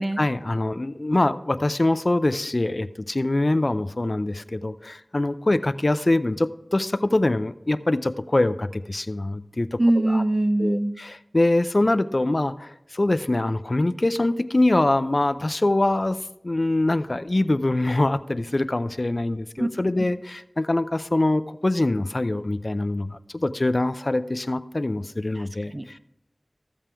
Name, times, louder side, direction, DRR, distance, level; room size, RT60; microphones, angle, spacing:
voice 1, 0.0-10.2 10.6-26.0, left 2 dB, 55° left, 13 dB, 0.4 m, -24 dB
voice 2, 9.8-11.0 19.6-19.7 25.4-25.5 25.7-25.9, right 1 dB, 35° right, 9 dB, 0.5 m, -22 dB
14.0 x 7.4 x 3.4 m, 0.82 s
wide cardioid pair, 50°, 0 cm